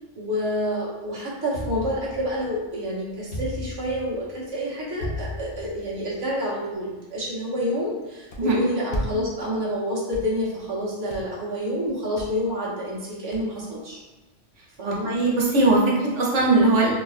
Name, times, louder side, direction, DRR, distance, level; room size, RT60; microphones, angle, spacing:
voice 1, 0.1-14.0 14.8-15.1, equal, 20° right, -7 dB, 0.8 m, -28 dB
sound 1, 1.5-2.6 3.3-4.4 5.0-6.1, left 2 dB, 50° left, 1.4 m, -35 dB
sound 2, 8.3-8.4 8.9-9.1 9.4-9.7 9.9-10.8 11.1-11.4 11.8-12.3 12.6-12.7 12.9-13.0 13.3-13.9, equal, 75° left, 1.0 m, -32 dB
voice 2, 14.8-17.0, right 2 dB, 80° right, -3 dB, 1.2 m, -20 dB
4.0 x 2.6 x 2.4 m, 1.1 s
omnidirectional pair, 1.2 m